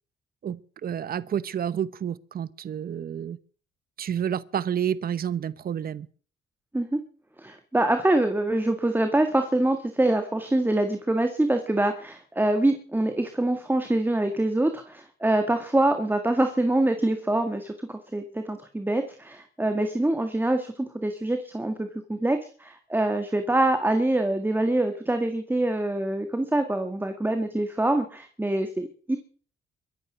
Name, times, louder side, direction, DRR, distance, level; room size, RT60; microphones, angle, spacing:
voice 1, 0.4-3.4 4.0-6.1, right 9 dB, 50° right, 0.9 m, -29 dB
voice 2, 7.4-29.2, right 1 dB, 10° right, 1.9 m, -25 dB
22.5 x 9.6 x 6.2 m
cardioid pair, 90°, 20 cm